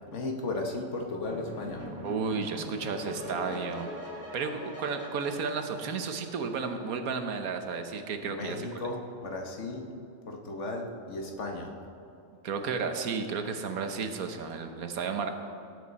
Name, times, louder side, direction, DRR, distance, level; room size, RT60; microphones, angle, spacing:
voice 1, 0.1-1.8 8.2-9.9 10.3-11.7, left 2 dB, 60° left, 2 dB, 1.5 m, -35 dB
sound 1, 1.3-6.7, equal, 10° left, 1.3 m, -42 dB
voice 2, 2.0-3.9 4.3-8.7 12.4-15.3, right 5 dB, 90° right, 6 dB, 1.4 m, -33 dB
17.5 x 8.0 x 4.1 m, 2.7 s
omnidirectional pair, 1.5 m